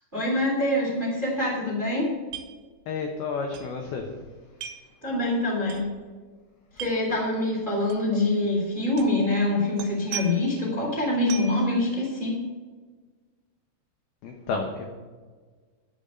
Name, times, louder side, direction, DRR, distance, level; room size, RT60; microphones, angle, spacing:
voice 1, 0.1-2.1 5.0-5.9 6.7-12.4, left 1 dB, 15° right, -1 dB, 2.2 m, -25 dB
sound 1, 2.3-2.5 2.8-2.9 3.5-3.7 4.6-4.9 5.7-5.8 6.7-6.9 7.9-8.0 9.0-9.2 9.8-10.6 11.3-11.6, right 9 dB, 80° right, 4.0 m, -37 dB
voice 2, 2.9-4.1 14.2-14.9, left 4 dB, 75° left, 2 dB, 2.3 m, -31 dB
12.5 x 5.4 x 8.9 m, 1.4 s
omnidirectional pair, 5.9 m